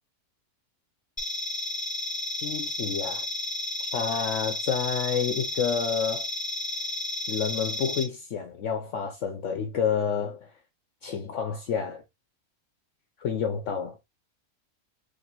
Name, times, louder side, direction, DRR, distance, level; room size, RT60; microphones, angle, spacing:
sound 1, 1.2-8.0, left 2 dB, 5° left, 1.2 m, -32 dB
voice 1, 2.4-3.2 3.8-6.3 7.3-10.5 11.0-12.0 13.2-14.0, left 7 dB, 65° left, 0.9 m, -29 dB
3.8 x 3.2 x 2.8 m
omnidirectional pair, 1.6 m